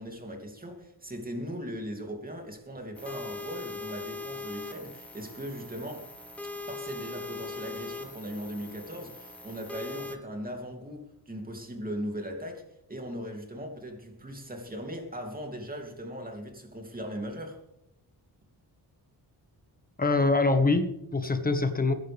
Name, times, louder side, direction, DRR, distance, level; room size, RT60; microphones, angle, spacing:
voice 1, 0.0-6.1 6.7-17.6, equal, 20° right, 2.9 m, -39 dB
sound 1, 2.9-10.2, left 3 dB, 5° left, 1.3 m, -40 dB
voice 2, 20.0-21.9, left 3 dB, 20° left, 1.5 m, -24 dB
21.0 x 10.5 x 3.6 m
cardioid pair, 110°, 40 cm